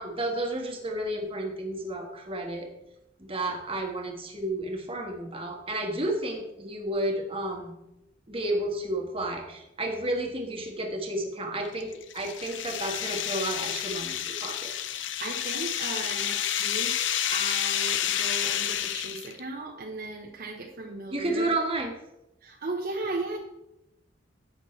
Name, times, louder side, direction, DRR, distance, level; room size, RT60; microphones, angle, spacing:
voice 1, 0.0-2.7 3.2-7.7 8.3-14.7 21.1-21.9, right 1 dB, 30° right, 2 dB, 1.5 m, -31 dB
sound 1, 11.6-19.4, left 10 dB, 75° left, 0.6 m, -30 dB
voice 2, 14.9-17.0 17.3-21.5 22.4-23.4, right 2 dB, 55° right, 1 dB, 1.0 m, -36 dB
10.5 x 8.0 x 3.2 m, 0.88 s
head